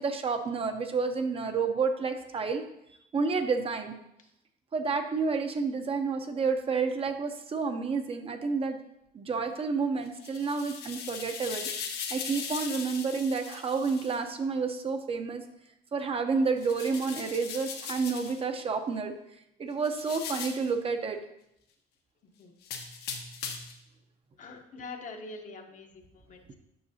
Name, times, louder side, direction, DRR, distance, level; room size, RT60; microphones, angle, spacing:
voice 1, 0.0-2.6 3.1-3.9 4.7-8.8 9.1-11.7 12.1-15.4 15.9-19.1 19.6-21.2 26.5-26.6, right 4 dB, 35° right, 6 dB, 0.7 m, -30 dB
sound 1, 10.1-14.2 16.6-18.4 19.8-20.7 22.6-23.8, left 6 dB, 75° left, 1.1 m, -39 dB
voice 2, 24.4-26.5, left 3 dB, 50° left, 4 dB, 0.9 m, -44 dB
8.6 x 5.9 x 2.8 m, 0.81 s
cardioid pair, 110°, 17 cm